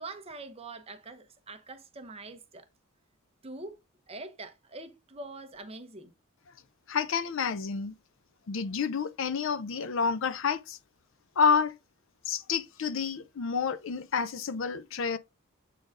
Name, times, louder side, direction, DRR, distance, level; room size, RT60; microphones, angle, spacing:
voice 1, 0.0-2.7 3.4-3.8 4.1-6.1, right 2 dB, 30° right, 0.8 m, -44 dB
voice 2, 6.9-7.9 8.5-10.8 11.4-11.7 12.3-15.2, left 5 dB, 65° left, 0.5 m, -29 dB
7.5 x 3.9 x 3.6 m
head